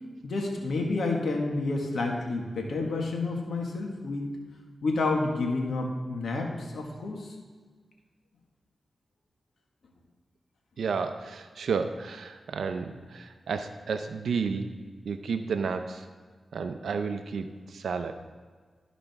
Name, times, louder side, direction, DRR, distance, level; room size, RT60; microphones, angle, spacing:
voice 1, 0.2-4.2 4.8-7.3, left 3 dB, 75° left, 1 dB, 1.6 m, -29 dB
voice 2, 10.8-14.7 15.0-16.1 16.5-18.2, right 5 dB, 85° right, 8 dB, 0.5 m, -32 dB
13.5 x 5.0 x 3.5 m, 1.5 s
cardioid pair, 55°, 0 cm